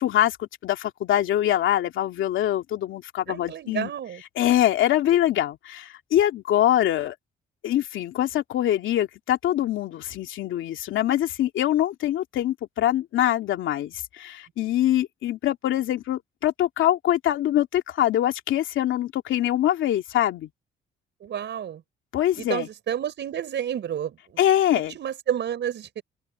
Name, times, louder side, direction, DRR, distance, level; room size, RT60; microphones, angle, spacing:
voice 1, 0.0-3.9 4.4-7.1 7.6-20.5 22.1-22.7 24.4-24.9, left 12 dB, 80° left, 2.7 m, -24 dB
voice 2, 3.3-4.2 21.2-21.8 22.4-24.4 24.7-26.0, right 9 dB, 65° right, 5.3 m, -30 dB
open air
cardioid pair, 90°, 20 cm